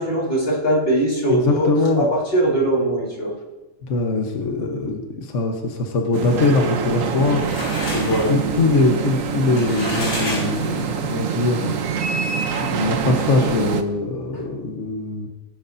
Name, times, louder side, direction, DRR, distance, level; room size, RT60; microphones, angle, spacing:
voice 1, 0.0-1.7 2.0-3.3 8.1-8.4, right 1 dB, 40° left, -4 dB, 3.9 m, -20 dB
voice 2, 1.3-2.1 3.8-7.4 7.9-11.8 12.5-15.3, left 3 dB, 55° left, 3 dB, 1.5 m, -22 dB
sound 1, 6.1-13.8, right 7 dB, 60° right, 1.2 m, -25 dB
sound 2, 6.9-11.1, left 1 dB, 85° left, 5.2 m, -31 dB
20.0 x 9.9 x 2.7 m, 1.1 s
omnidirectional pair, 1.6 m